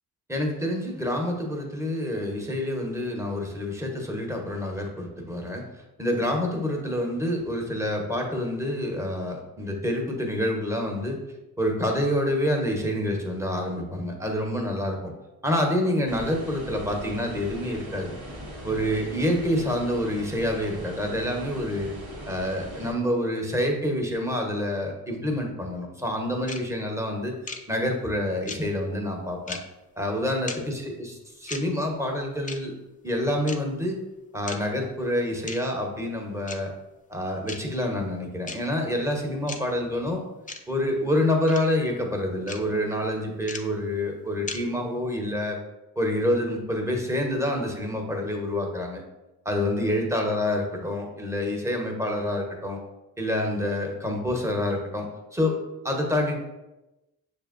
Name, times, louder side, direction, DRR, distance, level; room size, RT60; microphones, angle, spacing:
voice 1, 0.3-5.6 6.0-11.2 11.6-15.1 15.4-18.1 18.6-21.9 22.3-27.3 27.7-29.6 30.0-31.1 31.4-32.7 33.0-34.0 34.3-36.7 37.1-40.2 40.7-45.6 46.0-49.0 49.4-52.8 53.2-55.1 55.3-55.5 55.8-56.4, left 1 dB, 10° right, 1 dB, 0.9 m, -27 dB
sound 1, 16.1-22.9, equal, 85° right, 1.4 m, -40 dB
sound 2, 26.5-26.6 27.5-27.6 28.5-28.6 29.5-29.6 30.5-30.6 31.5-31.6 32.5-32.6 33.5-33.6 34.5-34.6 35.5-35.6 36.5-36.6 37.5-37.6 38.5-38.6 39.5-39.6 40.5-40.6 41.5-41.6 42.5-42.6 43.5-43.6 44.5-44.6, left 4 dB, 20° left, 0.5 m, -35 dB
6.3 x 2.6 x 2.5 m, 1.0 s
cardioid pair, 65°, 37 cm